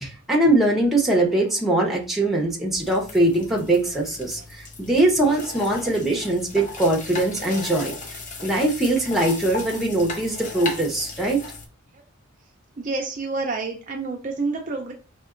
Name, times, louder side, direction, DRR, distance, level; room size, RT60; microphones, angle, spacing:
voice 1, 0.0-7.9 8.4-11.4, right 1 dB, ahead, -1 dB, 0.8 m, -22 dB
sound 1, 2.7-11.7, left 3 dB, 35° left, 0.7 m, -36 dB
voice 2, 12.8-14.9, right 3 dB, 35° right, 2 dB, 0.4 m, -28 dB
5.2 x 2.8 x 2.5 m, 0.35 s
head